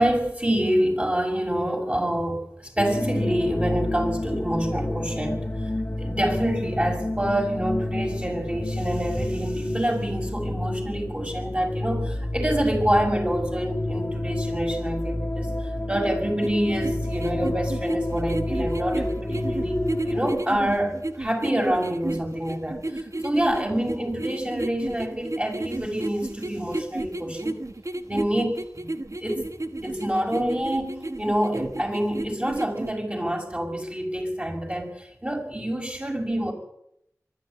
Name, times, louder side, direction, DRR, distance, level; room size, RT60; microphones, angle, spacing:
voice 1, 0.0-5.7 6.0-27.6 28.1-28.9 29.2-29.5 29.8-36.5, right 1 dB, 20° right, 2 dB, 6.8 m, -27 dB
sound 1, 2.8-20.3, left 1 dB, 35° left, 1.4 m, -29 dB
sound 2, 16.4-32.9, right 2 dB, 60° right, 1.4 m, -32 dB
23.5 x 12.5 x 9.8 m, 0.75 s
wide cardioid pair, 40°, 6 cm